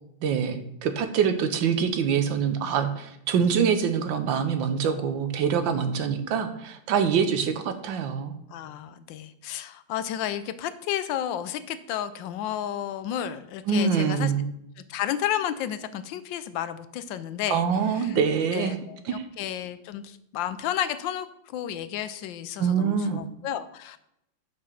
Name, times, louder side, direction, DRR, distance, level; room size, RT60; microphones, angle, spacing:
voice 1, 0.2-8.4 13.7-14.5 17.5-18.8 19.1-19.2 22.6-23.2, right 7 dB, 85° right, 8 dB, 1.5 m, -25 dB
voice 2, 8.5-14.3 14.9-17.6 18.0-18.2 18.5-21.3 21.5-24.0, left 10 dB, 80° left, 13 dB, 1.3 m, -32 dB
7.4 x 5.0 x 5.8 m, 0.79 s
omnidirectional pair, 2.0 m